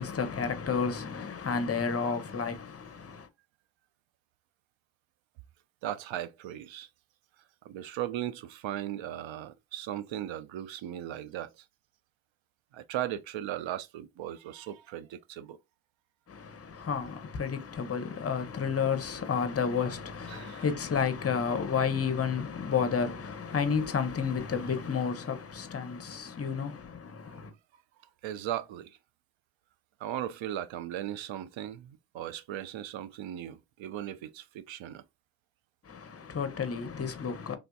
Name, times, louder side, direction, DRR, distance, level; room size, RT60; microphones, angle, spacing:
voice 1, 0.0-3.3 16.3-27.5 35.9-37.6, left 6 dB, 30° left, 0.8 m, -31 dB
voice 2, 5.8-6.9 7.6-11.5 12.7-15.6 20.3-20.7 28.2-29.0 30.0-35.0, right 12 dB, 65° right, 0.6 m, -37 dB
3.4 x 2.6 x 2.3 m
cardioid pair, 70°, 50 cm